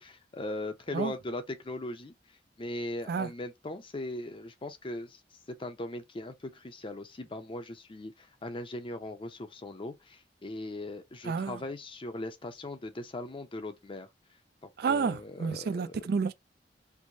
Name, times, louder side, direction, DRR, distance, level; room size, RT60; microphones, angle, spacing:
voice 1, 0.0-2.1 2.6-5.2 5.5-14.1 14.6-16.0, left 2 dB, 30° left, 0.6 m, -39 dB
voice 2, 11.2-11.6 14.8-16.3, right 5 dB, 60° right, 0.4 m, -30 dB
4.6 x 2.1 x 2.6 m
head